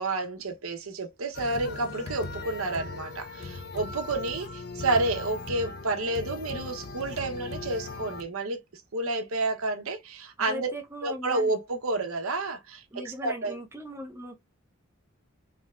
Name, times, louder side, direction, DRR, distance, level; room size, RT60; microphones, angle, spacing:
voice 1, 0.0-10.7 11.0-13.5, right 2 dB, 85° right, 0.9 m, -30 dB
sound 1, 1.3-8.2, left 3 dB, 50° left, 0.5 m, -39 dB
voice 2, 10.5-11.6 12.9-14.4, right 1 dB, 10° right, 0.7 m, -39 dB
3.4 x 3.3 x 2.4 m
head